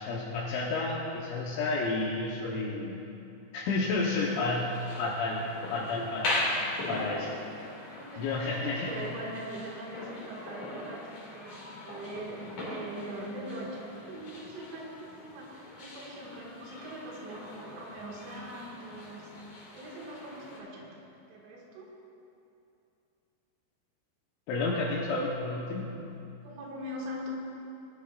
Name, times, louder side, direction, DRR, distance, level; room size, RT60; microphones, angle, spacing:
voice 1, 0.0-3.0 3.5-5.4 5.7-6.4 6.9-7.3 8.2-8.9 24.5-25.9, left 3 dB, 80° left, -5 dB, 3.3 m, -31 dB
sound 1, 4.2-20.6, left 1 dB, 50° left, 3.1 m, -40 dB
voice 2, 8.0-20.9 21.3-21.9 26.4-27.3, right 1 dB, 90° right, -3 dB, 4.3 m, -42 dB
20.0 x 11.5 x 2.5 m, 2.7 s
omnidirectional pair, 5.3 m